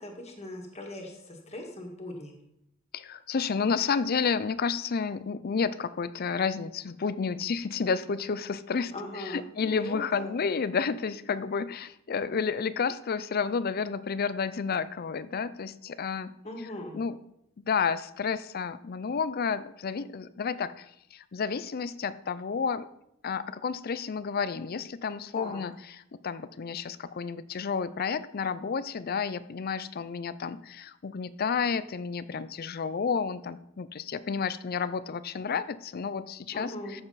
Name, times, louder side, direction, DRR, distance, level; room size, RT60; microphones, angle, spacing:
voice 1, 0.0-2.4 8.9-10.3 16.4-17.0 25.3-25.6 36.5-37.0, left 1 dB, 35° left, 1 dB, 1.9 m, -39 dB
voice 2, 2.9-8.9 9.3-16.3 16.9-17.2 17.6-20.9 21.1-22.9 23.2-25.7 26.1-37.0, left 5 dB, 50° left, 15 dB, 0.5 m, -31 dB
14.0 x 6.9 x 4.1 m, 0.79 s
head